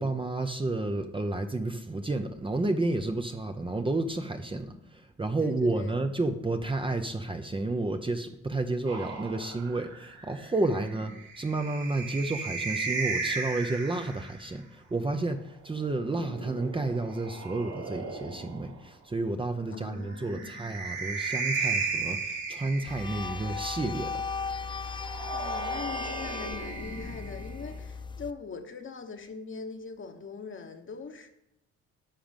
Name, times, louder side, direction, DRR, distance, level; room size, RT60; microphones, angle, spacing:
voice 1, 0.0-24.2 24.6-24.7, right 2 dB, 15° right, 6 dB, 0.8 m, -31 dB
voice 2, 5.4-5.9 10.6-11.0 19.7-20.6 25.3-31.3, left 5 dB, 40° left, 6 dB, 1.3 m, -42 dB
sound 1, 8.9-14.4 15.8-18.8 20.1-23.6 24.8-27.8, right 4 dB, 65° right, 2.9 m, -36 dB
sound 2, 22.9-28.3, left 5 dB, 15° left, 0.3 m, -36 dB
10.5 x 6.1 x 5.3 m, 0.84 s
cardioid pair, 90°, 30 cm